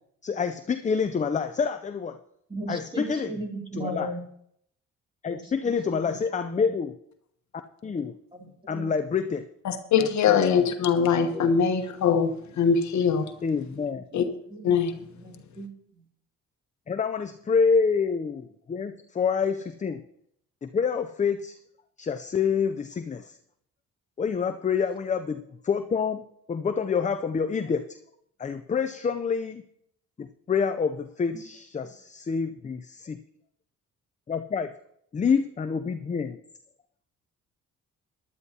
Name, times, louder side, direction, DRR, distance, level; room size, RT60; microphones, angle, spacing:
voice 1, 0.2-2.2 2.7-3.3 3.8-4.1 5.2-6.9 7.8-8.2 8.7-9.5 10.0-10.7 13.4-14.0 16.9-20.0 20.6-21.6 22.0-23.4 24.2-28.0 28.4-29.6 30.2-33.2 34.3-34.7 35.1-36.4, left 6 dB, 25° left, 8 dB, 0.5 m, -27 dB
voice 2, 2.5-4.2 5.3-5.5 6.0-6.7 8.3-8.9 10.9-11.5 14.1-14.7 15.0-16.0 31.3-31.4, right 1 dB, 15° right, 0 dB, 2.8 m, -38 dB
voice 3, 9.6-13.3 14.1-14.2 14.6-14.9, left 6 dB, 70° left, 7 dB, 1.1 m, -22 dB
18.0 x 11.0 x 2.8 m, 0.72 s
cardioid pair, 90°, 30 cm